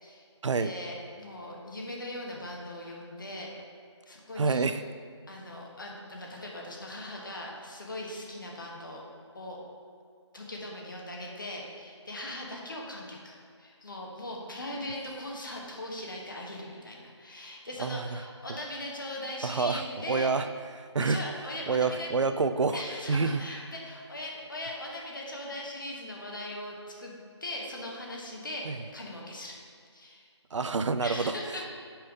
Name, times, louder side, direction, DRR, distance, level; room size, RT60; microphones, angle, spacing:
voice 1, 0.6-3.5 4.1-4.7 5.3-9.0 9.3-9.6 10.3-20.3 21.0-22.1 22.7-27.1 27.4-29.6 29.9-30.3 31.0-31.7, left 1 dB, 45° left, -1 dB, 1.1 m, -39 dB
voice 2, 4.4-4.8 17.8-18.2 19.4-20.5 20.8-21.2 21.7-22.8 23.1-23.4 28.7-28.8 30.5-31.3, right 4 dB, 85° right, 11 dB, 0.4 m, -27 dB
5.3 x 4.3 x 5.0 m, 2.2 s
figure-of-eight pair, 175°, 15 cm